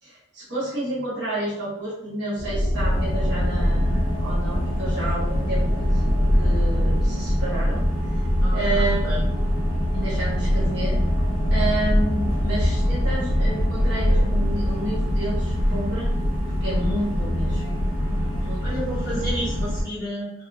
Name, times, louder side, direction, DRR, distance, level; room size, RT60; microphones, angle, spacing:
voice 1, 0.0-6.1 6.4-7.8 8.5-9.2 9.9-11.0 11.5-16.1 16.6-17.6 18.4-18.8 19.1-19.2, right 1 dB, 55° right, -9 dB, 1.0 m, -30 dB
sound 1, 2.4-17.9, equal, 45° left, 0.5 m, -25 dB
sound 2, 2.7-19.8, equal, 75° left, 0.7 m, -26 dB
voice 2, 8.4-9.2 18.6-20.3, right 1 dB, 10° right, -13 dB, 1.4 m, -31 dB
2.6 x 2.4 x 2.2 m, 0.80 s
head